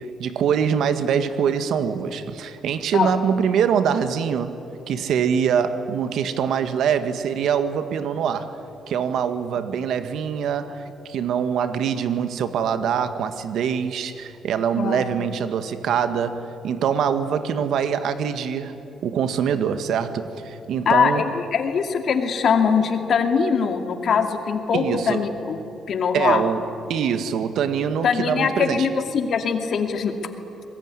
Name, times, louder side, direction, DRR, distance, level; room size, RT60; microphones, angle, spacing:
voice 1, 0.0-4.6 4.9-8.6 8.9-18.8 19.0-21.2 24.7-25.3 26.1-28.9, right 7 dB, 75° right, 10 dB, 1.6 m, -24 dB
voice 2, 20.9-25.6 25.9-26.4 28.0-30.1, left 6 dB, 60° left, 5 dB, 2.4 m, -22 dB
24.0 x 20.5 x 9.7 m, 2.9 s
cardioid pair, 90°, 0 cm